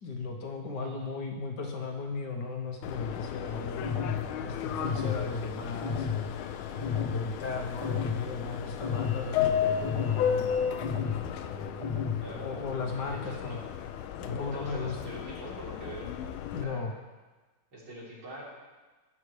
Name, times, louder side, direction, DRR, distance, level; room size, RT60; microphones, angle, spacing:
voice 1, 0.0-3.9 4.4-6.4 6.7-10.9 11.4-11.8 12.3-13.6 14.2-15.2 16.5-16.9, left 4 dB, 60° left, 2 dB, 1.6 m, -36 dB
voice 2, 0.7-1.2 12.2-12.5 13.1-13.6 14.4-16.1 16.6-16.8 17.7-18.5, right 1 dB, 80° right, -8 dB, 4.4 m, -43 dB
Subway metro underground, 2.8-16.6, left 8 dB, 80° left, 1.4 m, -34 dB
sound 1, 3.8-4.2 4.8-5.2 5.8-6.2 6.8-7.2 7.8-8.2 8.8-9.2 9.8-10.2 10.8-11.2 11.8-12.2, left 7 dB, 25° left, 0.7 m, -31 dB
18.5 x 6.5 x 3.3 m, 1.3 s
omnidirectional pair, 2.3 m